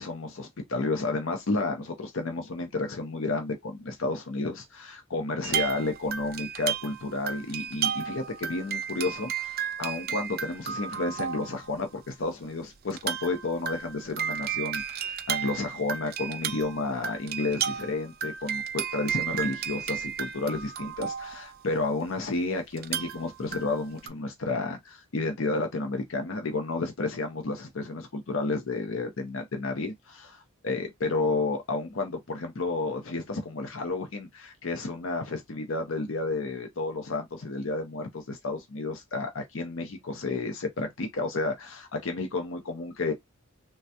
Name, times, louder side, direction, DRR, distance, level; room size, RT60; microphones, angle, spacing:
voice 1, 0.0-43.1, left 3 dB, 60° left, 0.6 m, -31 dB
sound 1, 5.4-11.8 12.3-12.4 12.9-22.0 22.8-24.1, right 8 dB, 45° right, 0.4 m, -33 dB
3.2 x 2.3 x 2.7 m
head